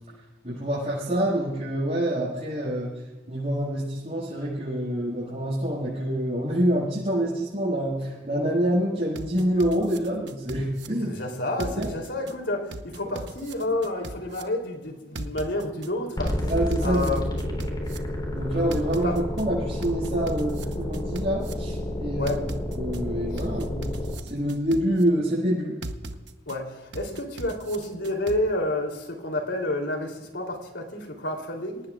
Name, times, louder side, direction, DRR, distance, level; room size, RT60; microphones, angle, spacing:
voice 1, 0.4-2.9 3.3-11.1 11.8-11.9 13.0-13.2 16.5-17.1 18.3-22.4 22.7-23.9 24.2-25.8, right 1 dB, 40° right, -8 dB, 6.7 m, -26 dB
sound 1, 9.1-10.9 11.6-12.3 12.7-14.4 15.1-15.9 16.3-18.0 18.7-19.4 19.8-21.5 22.3-23.0 23.4-25.0 25.8-26.6 26.9-28.4, right 2 dB, 75° right, 1.1 m, -38 dB
voice 2, 11.0-16.5 16.8-17.3 19.0-19.2 22.1-22.4 23.3-23.4 26.4-31.8, left 1 dB, 80° left, 3 dB, 3.4 m, -30 dB
sound 2, 16.2-24.2, left 1 dB, 25° left, 3.7 m, -30 dB
27.0 x 18.5 x 2.5 m, 1.1 s
head